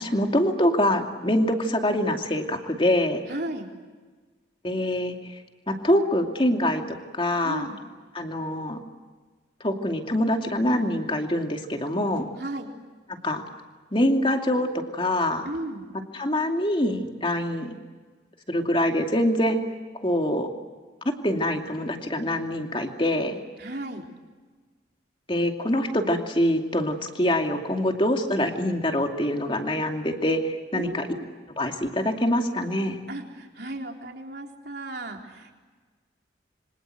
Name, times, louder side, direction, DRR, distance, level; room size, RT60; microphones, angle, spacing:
voice 1, 0.0-3.2 4.6-5.4 5.7-7.7 8.1-8.8 9.6-12.3 13.2-13.4 13.9-15.5 16.1-17.7 18.5-19.6 20.0-20.5 21.0-23.4 25.3-31.1 31.6-33.0, left 1 dB, 25° left, 3 dB, 2.6 m, -25 dB
voice 2, 3.3-3.7 7.4-7.8 12.4-12.7 15.4-15.8 23.6-24.0 30.7-31.3 33.1-35.6, right 1 dB, 60° right, 1 dB, 4.0 m, -35 dB
27.0 x 25.0 x 7.9 m, 1.4 s
head